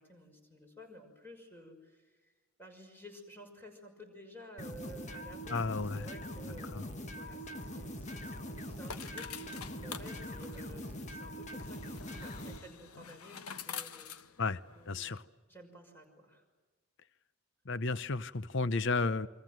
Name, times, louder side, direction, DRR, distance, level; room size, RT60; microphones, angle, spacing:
voice 1, 0.0-2.3 2.6-14.2 14.7-15.1 15.5-16.4, equal, 10° left, 3 dB, 5.9 m, -53 dB
sound 1, 4.6-12.6, equal, 30° left, 1.7 m, -43 dB
voice 2, 5.5-6.1 6.7-6.8 14.4-14.6 14.9-15.2 17.7-19.3, left 3 dB, 55° left, 15 dB, 0.8 m, -32 dB
sound 2, 7.4-15.0, left 7 dB, 80° left, 1.3 m, -48 dB
28.5 x 24.5 x 7.7 m, 1.3 s
head